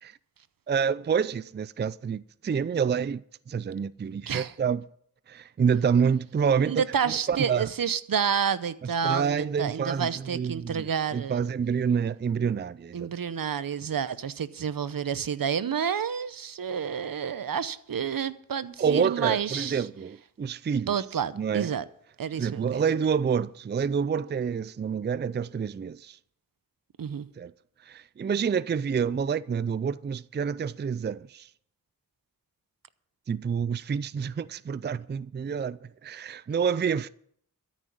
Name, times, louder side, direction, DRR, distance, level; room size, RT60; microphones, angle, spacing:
voice 1, 0.7-4.8 5.3-7.7 8.8-13.1 18.8-20.9 21.3-21.7 22.4-26.2 27.4-27.5 27.8-31.5 33.3-37.1, right 6 dB, 30° right, 0.4 m, -28 dB
voice 2, 6.7-11.5 12.9-19.9 20.9-21.8 22.2-22.8 27.0-27.3, right 7 dB, 75° right, 0.8 m, -29 dB
13.5 x 6.3 x 9.3 m
cardioid pair, 55°, 35 cm